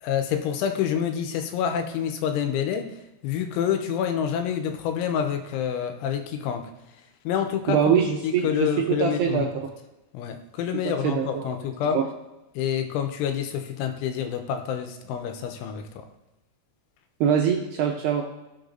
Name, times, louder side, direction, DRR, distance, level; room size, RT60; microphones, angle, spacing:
voice 1, 0.0-2.9 3.2-6.7 7.3-9.5 10.1-12.0 12.6-16.1, left 8 dB, 80° left, 6 dB, 3.1 m, -27 dB
voice 2, 7.7-9.5 10.8-11.5 11.9-12.0 17.2-18.2, right 8 dB, 80° right, 0 dB, 2.4 m, -23 dB
16.5 x 6.8 x 2.6 m, 0.98 s
omnidirectional pair, 5.7 m